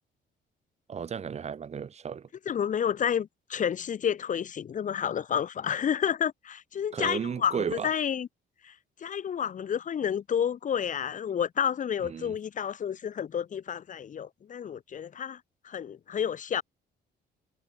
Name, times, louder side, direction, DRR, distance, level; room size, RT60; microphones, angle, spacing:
voice 1, 0.9-2.3 6.9-7.9 12.0-12.4, right 7 dB, 40° right, 2.4 m, -34 dB
voice 2, 2.5-8.3 8.6-8.7 9.0-15.4 15.6-16.6, left 8 dB, 45° left, 3.7 m, -30 dB
cardioid pair, 130°, 18 cm